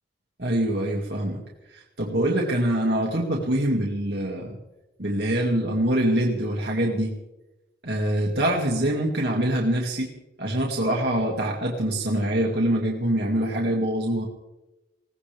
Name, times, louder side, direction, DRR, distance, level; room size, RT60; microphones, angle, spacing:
voice 1, 0.4-1.4 1.7-4.6 5.0-7.1 7.8-10.1 10.4-14.3, right 1 dB, 60° right, -2 dB, 2.2 m, -24 dB
21.0 x 17.0 x 3.5 m, 0.98 s
head